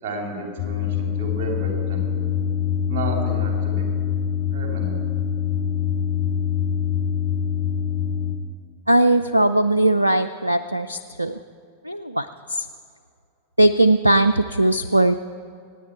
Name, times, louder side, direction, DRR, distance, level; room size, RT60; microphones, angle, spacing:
voice 1, 0.0-2.2 2.9-3.9 4.5-5.0, right 2 dB, 45° right, 1 dB, 3.4 m, -32 dB
sound 1, 0.6-8.4, left 8 dB, 55° left, 1.6 m, -24 dB
voice 2, 8.9-11.4 11.8-12.7 13.6-15.1, right 1 dB, 85° right, 13 dB, 0.3 m, -19 dB
24.5 x 9.6 x 4.6 m, 2.3 s
figure-of-eight pair, 90°, 0 cm